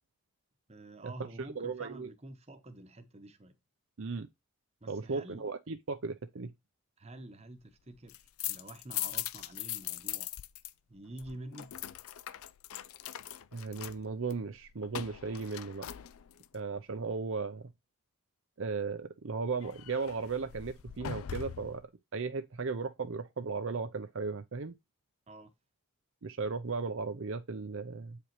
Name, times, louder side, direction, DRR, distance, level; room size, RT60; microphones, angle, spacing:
voice 1, 0.7-3.6 4.8-5.5 7.0-10.3 10.9-11.7 25.3-25.5, right 2 dB, 30° right, 0.9 m, -48 dB
voice 2, 1.6-2.1 4.0-4.3 4.9-6.5 13.5-15.9 16.5-17.7 18.6-21.8 22.1-24.7 26.2-28.2, right 4 dB, 60° right, 0.6 m, -36 dB
sound 1, 7.9-10.7 11.0-16.6 19.6-21.8, left 12 dB, 70° left, 0.4 m, -41 dB
8.5 x 5.0 x 3.1 m
head